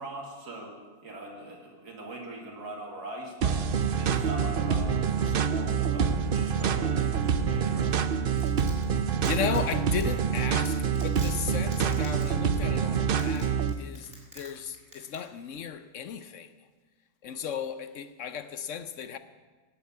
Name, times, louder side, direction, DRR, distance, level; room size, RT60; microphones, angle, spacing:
voice 1, 0.0-3.6 4.0-8.1, right 1 dB, 80° right, 2.7 m, -41 dB
sound 1, 3.4-13.7, right 7 dB, 55° right, 0.6 m, -26 dB
Domestic sounds home sounds, 8.1-14.5 14.7-15.2 15.5-15.6, right 1 dB, 25° right, 4.5 m, -47 dB
voice 2, 9.2-14.1 14.3-16.5 17.2-19.2, left 8 dB, 60° left, 0.9 m, -35 dB
18.0 x 8.1 x 8.5 m
omnidirectional pair, 1.7 m